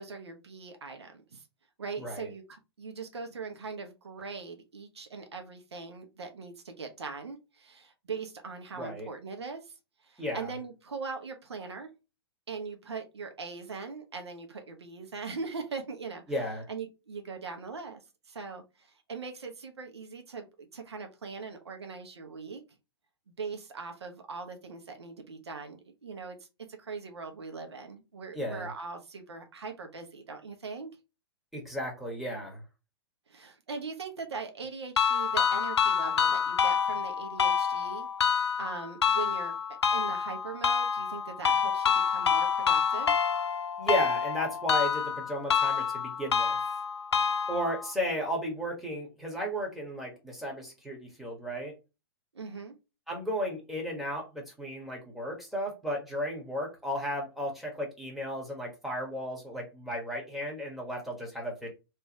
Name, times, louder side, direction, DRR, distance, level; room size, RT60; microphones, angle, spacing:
voice 1, 0.0-1.4 1.8-9.7 10.0-11.9 12.5-16.2 16.7-18.0 18.3-22.6 23.3-26.4 26.7-30.9 33.3-43.2 52.3-52.8, right 4 dB, 85° right, 1.1 m, -41 dB
voice 2, 2.0-2.3 8.8-9.1 10.2-10.5 16.3-16.7 28.3-28.7 31.5-32.6 43.8-46.6 47.5-51.7 53.1-61.7, equal, ahead, 1.7 m, -34 dB
sound 1, 35.0-47.9, left 7 dB, 90° left, 0.5 m, -27 dB
3.3 x 3.3 x 3.0 m
hypercardioid pair, 115°, 14 cm